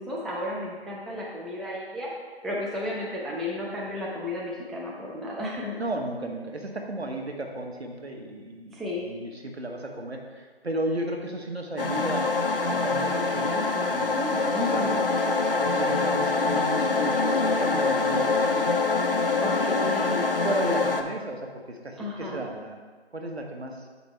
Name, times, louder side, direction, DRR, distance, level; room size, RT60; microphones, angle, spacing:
voice 1, 0.0-2.1 2.4-5.7 8.7-9.1 14.5-15.1 19.4-20.3 22.0-22.4, left 1 dB, ahead, -5 dB, 0.4 m, -33 dB
voice 2, 5.8-12.2 12.7-15.0 15.6-18.8 20.4-22.8 23.1-23.9, right 1 dB, 75° right, 2 dB, 1.2 m, -34 dB
sound 1, 11.8-21.0, left 3 dB, 60° left, 0.5 m, -25 dB
7.1 x 5.0 x 3.3 m, 1.4 s
figure-of-eight pair, 175°, 32 cm